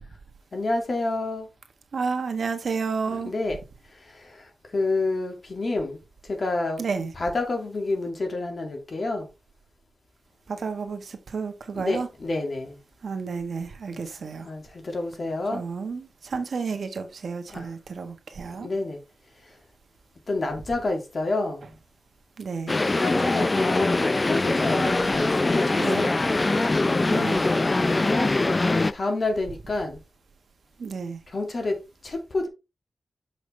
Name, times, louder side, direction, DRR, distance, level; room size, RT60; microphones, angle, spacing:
voice 1, 0.5-1.5 3.1-3.6 3.9-6.0 6.3-6.8 7.2-9.3 11.7-12.8 13.9-14.0 14.5-15.6 17.5-17.7 18.4-19.0 20.3-21.8 22.8-26.2 28.0-28.3 28.9-30.0 31.3-32.5, left 2 dB, 50° left, 2.4 m, -29 dB
voice 2, 1.9-3.3 6.8-7.1 10.5-12.1 13.0-14.5 15.5-18.7 22.4-22.7 25.8-26.1 27.1-27.4 30.8-31.2, right 5 dB, 75° right, 1.4 m, -31 dB
sound 1, 22.7-28.9, left 2 dB, 30° left, 0.4 m, -22 dB
6.8 x 5.9 x 3.4 m
wide cardioid pair, 105°, 0 cm